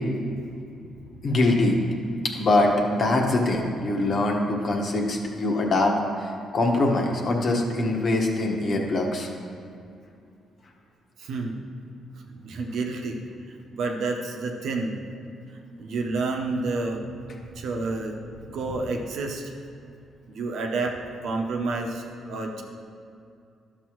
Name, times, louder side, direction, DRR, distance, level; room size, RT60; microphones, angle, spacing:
voice 1, 1.2-1.8 2.3-9.3, left 2 dB, 50° left, 1 dB, 1.4 m, -23 dB
voice 2, 11.2-11.6 12.3-15.0 15.8-17.0 17.5-19.5 20.3-21.0 21.2-22.6, right 3 dB, 75° right, 2 dB, 1.0 m, -30 dB
12.0 x 6.8 x 3.1 m, 2.4 s
cardioid pair, 90°, 0 cm